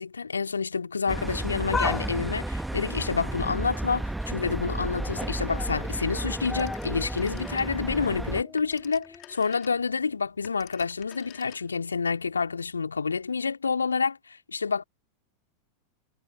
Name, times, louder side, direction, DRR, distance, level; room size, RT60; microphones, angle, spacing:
voice 1, 0.0-14.8, left 5 dB, 75° left, 3.0 m, -28 dB
sound 1, 1.1-8.4, right 1 dB, 5° right, 1.7 m, -32 dB
sound 2, 1.7-4.3 4.7-5.2 5.5-9.4 9.7-9.8 10.8-10.9, left 5 dB, 15° left, 5.0 m, -38 dB
Telephone, 6.5-8.0 8.4-11.9, left 19 dB, 40° left, 5.1 m, -50 dB
figure-of-eight pair, 90°, 0 cm